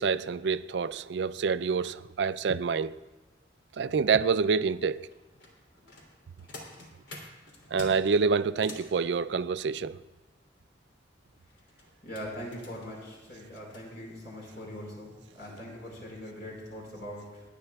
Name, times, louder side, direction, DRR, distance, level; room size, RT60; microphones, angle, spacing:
voice 1, 0.0-3.0 3.8-5.1 7.7-10.0, right 5 dB, 70° right, 14 dB, 0.4 m, -27 dB
sound 1, 5.1-8.9 11.4-13.8 14.6-14.7 15.1-15.3 15.8-16.0 16.3-16.4, left 2 dB, 85° left, 2.9 m, -48 dB
voice 2, 12.0-17.4, equal, 65° left, -3 dB, 4.8 m, -42 dB
28.5 x 9.7 x 2.3 m, 1.2 s
head